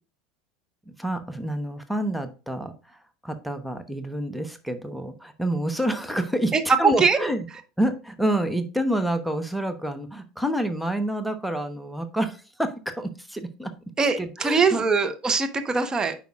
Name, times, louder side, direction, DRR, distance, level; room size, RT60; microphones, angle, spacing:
voice 1, 0.9-7.5 7.8-13.7 14.2-14.8, right 1 dB, ahead, 9 dB, 1.1 m, -28 dB
voice 2, 6.5-7.2 14.0-16.2, right 5 dB, 20° right, 7 dB, 1.2 m, -22 dB
9.3 x 5.2 x 2.5 m, 0.32 s
figure-of-eight pair, 75°, 3 cm